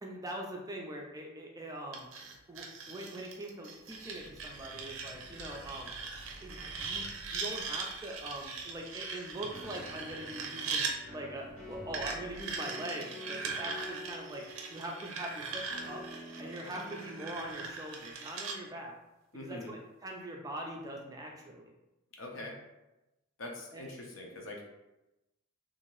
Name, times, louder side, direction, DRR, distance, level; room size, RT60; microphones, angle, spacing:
voice 1, 0.0-2.1 2.5-5.9 6.4-10.8 11.1-14.4 14.7-16.0 16.4-18.9 19.3-21.7 23.7-23.8, right 1 dB, 15° right, 0 dB, 0.4 m, -42 dB
sound 1, 1.9-10.9 11.9-18.6, right 4 dB, 70° right, 0.5 m, -40 dB
sound 2, 3.8-12.6, equal, 30° left, 0.8 m, -55 dB
sound 3, 9.5-17.8, equal, 90° left, 1.1 m, -48 dB
voice 2, 19.3-19.7 22.1-22.6 23.4-24.6, left 1 dB, 65° left, 0 dB, 0.6 m, -43 dB
2.7 x 2.5 x 3.0 m, 0.97 s
head